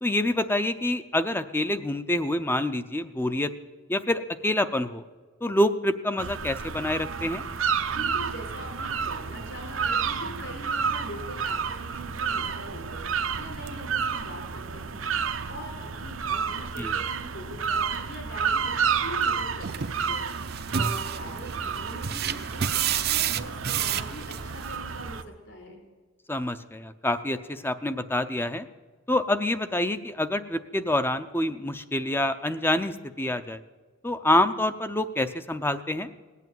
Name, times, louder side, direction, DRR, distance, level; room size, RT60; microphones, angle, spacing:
voice 1, 0.0-3.5 3.9-5.0 5.4-7.4 16.8-16.9 26.3-28.7 29.1-33.6 34.0-36.1, left 1 dB, 10° left, 10 dB, 0.6 m, -27 dB
sound 1, 6.2-25.2, right 6 dB, 85° right, 0.9 m, -30 dB
voice 2, 7.9-20.3 20.7-25.8, equal, 65° left, 2 dB, 4.7 m, -42 dB
sound 2, 19.6-24.7, right 8 dB, 50° right, 0.6 m, -30 dB
18.5 x 8.3 x 9.2 m, 1.4 s
head